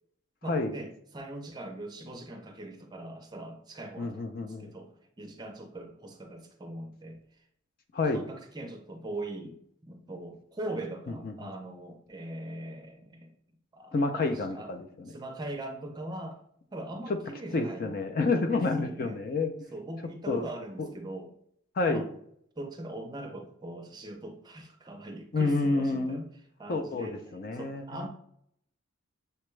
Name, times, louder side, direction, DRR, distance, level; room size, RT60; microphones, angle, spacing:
voice 1, 0.4-4.9 5.2-7.2 8.0-9.6 9.8-13.3 13.7-14.2 14.5-14.7 15.1-16.4 16.7-17.9 18.5-19.2 19.7-21.3 21.9-22.1 22.6-26.2 26.6-27.2 27.5-28.1, right 1 dB, 20° right, 3 dB, 0.5 m, -41 dB
voice 2, 4.0-4.7 7.9-8.3 11.1-11.5 13.9-15.1 17.5-19.5 20.3-20.5 20.8-20.9 21.8-22.1 25.3-26.2 26.7-28.1, left 3 dB, 40° left, 6 dB, 0.4 m, -29 dB
6.6 x 2.2 x 3.1 m, 0.70 s
head